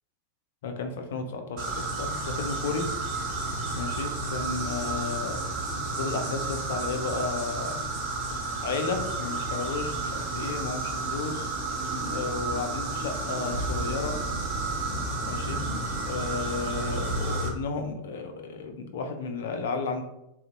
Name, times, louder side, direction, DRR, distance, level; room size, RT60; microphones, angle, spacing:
voice 1, 0.6-2.9 3.7-5.4 5.9-7.8 8.6-11.5 12.1-14.1 15.2-15.7 16.0-20.0, left 4 dB, 60° left, 5 dB, 0.3 m, -33 dB
sound 1, 1.6-17.5, right 2 dB, 40° right, 0.6 m, -31 dB
2.5 x 2.0 x 2.4 m, 0.87 s
figure-of-eight pair, 90°, 0 cm